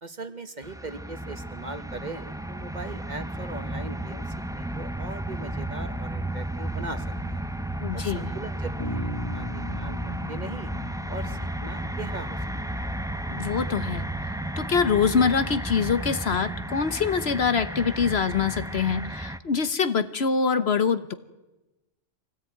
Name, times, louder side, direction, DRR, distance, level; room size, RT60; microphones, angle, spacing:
voice 1, 0.0-7.5 7.9-10.7 11.1-12.4, right 3 dB, 35° right, 9 dB, 1.3 m, -40 dB
sound 1, 0.6-19.4, right 1 dB, 5° right, 0.5 m, -33 dB
voice 2, 7.8-8.3 13.3-14.0 14.6-21.1, left 6 dB, 60° left, 12 dB, 1.2 m, -24 dB
Bass guitar, 8.8-12.8, left 2 dB, 20° left, 2.2 m, -39 dB
24.5 x 17.5 x 9.2 m, 1.1 s
omnidirectional pair, 1.3 m